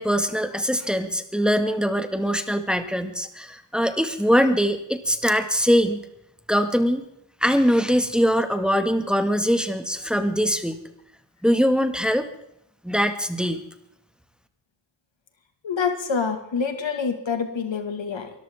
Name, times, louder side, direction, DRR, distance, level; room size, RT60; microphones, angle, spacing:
voice 1, 0.0-6.0 6.5-7.0 7.4-10.8 11.4-12.3 12.8-13.6, equal, ahead, 7 dB, 1.8 m, -22 dB
voice 2, 15.6-18.3, left 5 dB, 80° left, 6 dB, 2.1 m, -26 dB
23.5 x 14.5 x 3.7 m, 0.75 s
cardioid pair, 55°, 44 cm